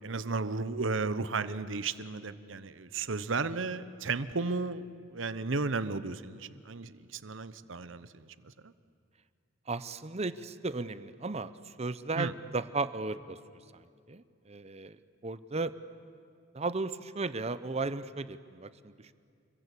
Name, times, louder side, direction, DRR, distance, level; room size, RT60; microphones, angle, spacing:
voice 1, 0.0-8.3 8.6-8.7 12.2-12.3, right 3 dB, 80° right, 14 dB, 0.9 m, -34 dB
voice 2, 9.7-13.4 13.7-13.8 14.1-15.7 16.5-19.1, right 3 dB, 35° right, 14 dB, 0.8 m, -35 dB
29.5 x 22.5 x 8.4 m, 2.2 s
head